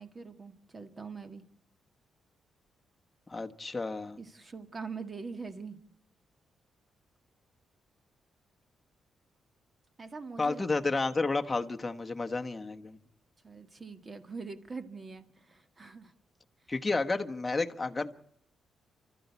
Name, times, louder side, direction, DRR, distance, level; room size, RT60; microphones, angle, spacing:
voice 1, 0.0-1.4 4.2-5.8 10.0-10.7 13.4-16.1, right 4 dB, 25° right, 2.0 m, -43 dB
voice 2, 3.3-4.2 10.4-13.0 16.7-18.1, left 3 dB, 15° left, 1.3 m, -31 dB
29.5 x 13.5 x 8.3 m
cardioid pair, 130°, 0 cm